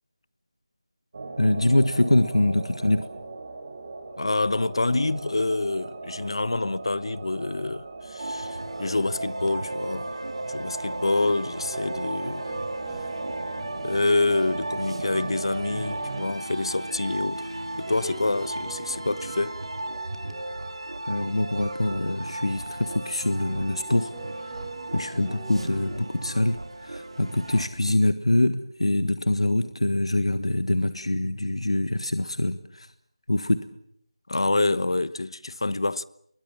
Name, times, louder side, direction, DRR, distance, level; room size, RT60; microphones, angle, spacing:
sound 1, 1.1-16.3, right 3 dB, 35° right, 3.8 m, -39 dB
voice 1, 1.4-3.1 21.1-24.1 24.4-24.6 24.9-32.9 33.3-33.7, left 1 dB, 75° left, 1.5 m, -24 dB
voice 2, 4.2-10.1 10.5-12.5 13.0-13.1 13.8-19.6 34.3-36.0, left 2 dB, 60° left, 1.1 m, -27 dB
sound 2, 8.2-27.7, right 2 dB, 65° right, 3.9 m, -35 dB
sound 3, 11.7-15.2 15.5-15.6 17.9-21.2 23.3-26.5, right 4 dB, 15° right, 5.7 m, -44 dB
30.0 x 22.0 x 7.4 m
figure-of-eight pair, 165°, 3 cm